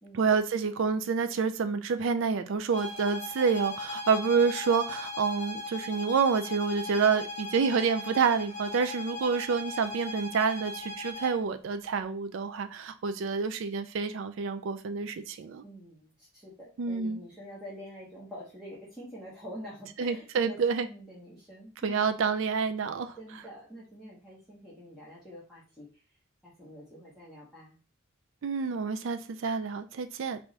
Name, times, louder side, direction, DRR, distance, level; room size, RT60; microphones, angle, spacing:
voice 1, 0.1-15.6 16.8-17.2 20.0-20.9 21.8-23.1 28.4-30.4, right 5 dB, 65° right, 9 dB, 0.4 m, -28 dB
sound 1, 2.7-11.4, left 2 dB, 35° left, 1.7 m, -39 dB
voice 2, 15.6-22.0 23.2-26.0 26.4-27.8, equal, ahead, -8 dB, 1.3 m, -46 dB
4.6 x 2.6 x 3.2 m, 0.35 s
head